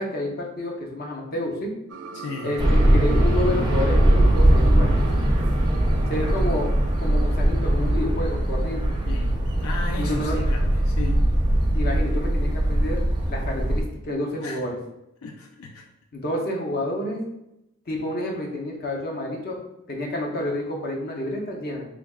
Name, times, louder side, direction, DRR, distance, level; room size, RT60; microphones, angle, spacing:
voice 1, 0.0-1.7 2.4-4.9 6.1-6.7 7.0-8.9 10.0-10.4 11.7-14.8 16.1-17.2 17.9-19.6 19.9-21.9, left 1 dB, 45° left, 0 dB, 0.6 m, -29 dB
sound 1, 1.9-6.9, right 3 dB, 80° right, 0.4 m, -40 dB
voice 2, 2.1-2.6 6.2-6.4 9.1-11.3 14.4-14.6 15.2-15.8, left 3 dB, 80° left, 3 dB, 0.4 m, -35 dB
sound 2, 2.6-13.8, right 1 dB, 20° right, 0.5 m, -21 dB
3.5 x 3.3 x 2.3 m, 0.86 s
head